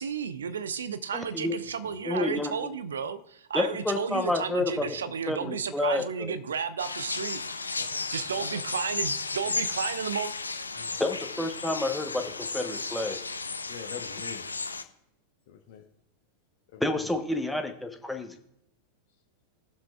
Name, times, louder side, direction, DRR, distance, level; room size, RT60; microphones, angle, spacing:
voice 1, 0.0-7.4 8.1-10.3, right 6 dB, 65° right, 13 dB, 0.6 m, -33 dB
voice 2, 1.1-1.5 2.0-2.7 3.5-4.8 5.3-6.4 11.0-13.2 16.8-18.3, left 2 dB, 5° left, 5 dB, 1.1 m, -29 dB
sound 1, 6.8-14.8, left 3 dB, 80° left, 0.5 m, -34 dB
voice 3, 7.8-8.1 8.3-8.6 8.9-9.0 9.4-9.6 10.8-11.0 13.7-14.4 15.5-15.8 16.7-17.1, left 9 dB, 50° left, 1 dB, 1.0 m, -45 dB
19.5 x 7.3 x 2.4 m, 0.78 s
figure-of-eight pair, 90°, 0 cm